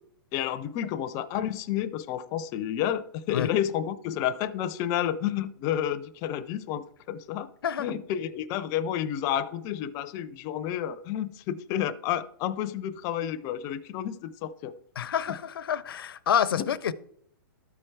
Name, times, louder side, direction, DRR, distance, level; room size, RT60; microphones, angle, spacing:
voice 1, 0.3-7.5 7.8-14.7 16.6-16.7, left 10 dB, 30° left, 0.4 m, -30 dB
voice 2, 15.0-16.9, left 8 dB, 85° left, 0.5 m, -28 dB
12.5 x 4.5 x 4.5 m
hypercardioid pair, 145°, 12 cm